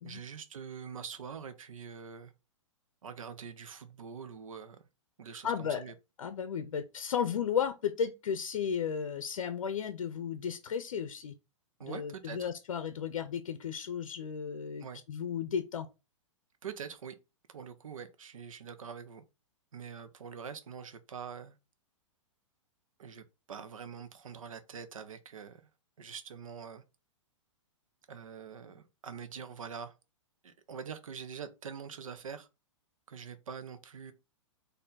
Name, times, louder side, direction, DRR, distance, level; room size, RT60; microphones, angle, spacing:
voice 1, 0.0-2.3 3.0-4.8 5.2-5.9 11.8-12.5 14.8-15.0 16.6-17.2 17.5-19.2 19.7-21.6 23.0-25.6 26.0-26.8 28.1-29.9 30.4-32.5 33.1-34.1, right 6 dB, 85° right, 0.8 m, -44 dB
voice 2, 5.4-5.8 6.2-11.3 11.8-15.9, left 7 dB, 80° left, 0.6 m, -34 dB
4.3 x 2.7 x 4.0 m
hypercardioid pair, 125°, 17 cm